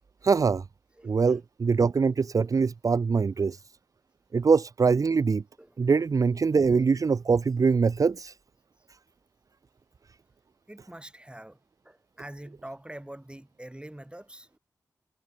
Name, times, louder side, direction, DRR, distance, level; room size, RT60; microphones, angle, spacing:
voice 1, 0.2-0.6 1.0-3.6 4.3-5.4 5.8-8.3, right 5 dB, 55° right, 0.4 m, -23 dB
voice 2, 1.0-1.7 5.6-5.8 10.7-11.6 11.8-14.6, right 1 dB, 15° right, 5.9 m, -45 dB
cardioid pair, 55°, 7 cm